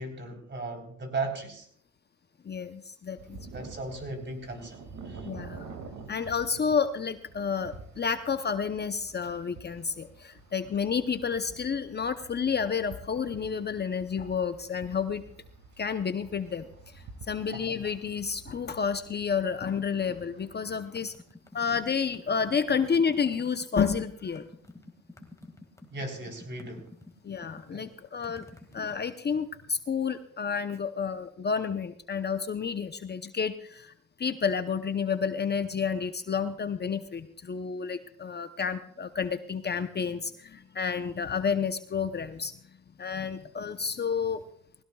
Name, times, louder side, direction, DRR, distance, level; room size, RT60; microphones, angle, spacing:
voice 1, 0.0-1.7 3.5-5.3 17.4-17.7 25.8-26.9 27.7-27.9, right 3 dB, 35° right, 3 dB, 3.8 m, -37 dB
voice 2, 2.4-3.4 5.2-5.7 6.1-15.2 15.8-21.1 21.5-24.5 27.2-28.5 28.7-33.9 34.2-42.5 43.0-44.4, left 6 dB, 35° left, 9 dB, 0.8 m, -30 dB
sound 1, 3.2-20.6, right 4 dB, 75° right, 2.3 m, -49 dB
sound 2, 20.7-28.9, left 2 dB, 10° left, 2.0 m, -50 dB
20.0 x 17.0 x 2.4 m, 0.64 s
cardioid pair, 90°, 30 cm